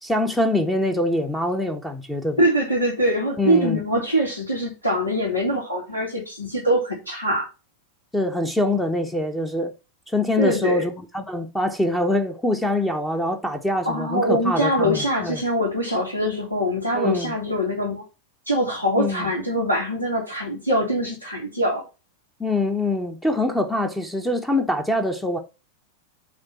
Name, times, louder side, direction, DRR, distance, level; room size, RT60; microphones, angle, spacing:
voice 1, 0.0-2.4 3.4-3.8 8.1-9.7 10.1-15.4 16.9-17.3 19.0-19.3 22.4-25.4, left 1 dB, 5° left, 1.0 m, -24 dB
voice 2, 2.4-7.5 10.4-10.8 13.8-18.0 18.5-21.9, equal, 85° left, 2.8 m, -23 dB
8.8 x 3.7 x 5.7 m
figure-of-eight pair, 90°, 0 cm